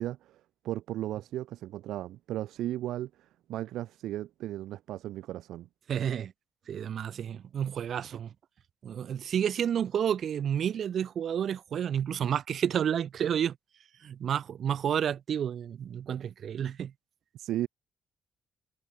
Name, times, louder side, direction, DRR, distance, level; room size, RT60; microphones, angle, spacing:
voice 1, 0.0-5.7 17.3-17.7, right 14 dB, 85° right, 2.3 m, -36 dB
voice 2, 5.9-6.3 6.7-8.3 8.8-13.6 14.0-16.9, right 9 dB, 60° right, 5.3 m, -30 dB
cardioid pair, 90°, 0 cm